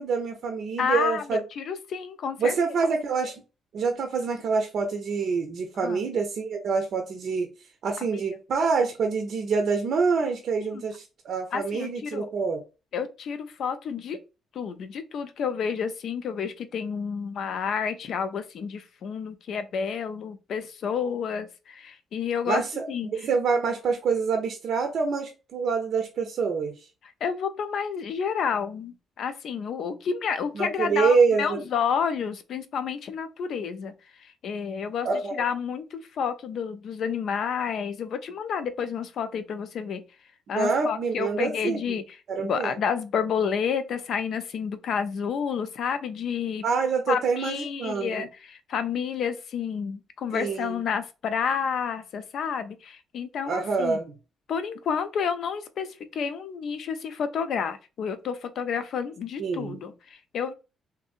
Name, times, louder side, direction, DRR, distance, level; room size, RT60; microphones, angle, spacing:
voice 1, 0.0-1.4 2.4-3.4 3.7-7.5 7.8-12.6 22.5-22.8 23.1-26.8 30.5-31.6 35.0-35.5 40.5-42.0 42.3-42.7 46.6-48.3 50.3-50.8 53.5-54.1 59.4-59.8, right 5 dB, 65° right, 0.5 m, -26 dB
voice 2, 0.8-2.6 5.8-6.0 8.1-8.2 10.6-10.8 11.5-12.3 12.9-14.2 14.5-22.6 22.9-23.1 27.2-33.9 34.2-35.1 35.4-40.0 40.5-46.6 47.1-54.0 54.5-60.5, left 7 dB, 65° left, 0.4 m, -30 dB
2.6 x 2.6 x 2.4 m
cardioid pair, 90°, 0 cm